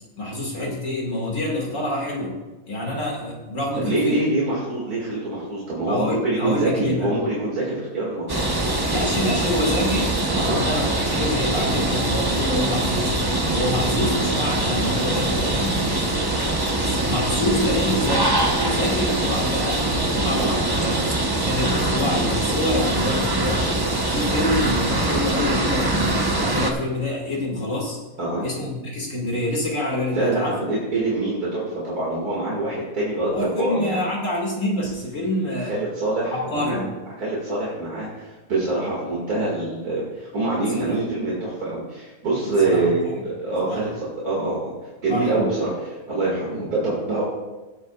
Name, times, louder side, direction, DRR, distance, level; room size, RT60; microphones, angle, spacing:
voice 1, 0.2-2.3 2.7-4.3 5.9-7.1 8.9-10.2 10.6-13.1 13.5-15.9 16.8-21.0 21.4-23.6 24.1-28.0 28.4-30.5 33.3-35.7 36.3-36.9 40.7-41.0 42.4-42.9 43.6-43.8 45.1-45.5 46.5-46.6, left 1 dB, 60° left, -2 dB, 2.7 m, -26 dB
voice 2, 3.7-8.5 10.3-10.7 19.9-20.4 28.2-28.5 30.1-34.0 35.7-36.8 37.2-47.2, right 2 dB, 85° right, -6 dB, 2.8 m, -25 dB
sound 1, 8.3-26.7, right 2 dB, 20° right, 0.8 m, -23 dB
18.0 x 8.2 x 2.4 m, 1.2 s
omnidirectional pair, 1.6 m